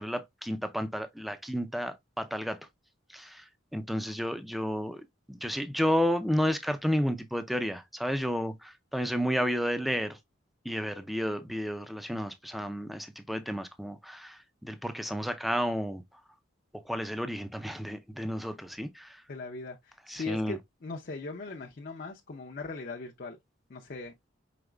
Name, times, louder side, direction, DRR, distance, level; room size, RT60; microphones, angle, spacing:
voice 1, 0.0-2.6 3.1-3.4 3.7-10.2 10.6-16.0 16.8-19.2 20.1-20.6, equal, ahead, 0.4 m, -32 dB
voice 2, 19.3-23.4 23.7-24.2, left 3 dB, 50° left, 0.6 m, -39 dB
5.0 x 3.9 x 2.2 m
head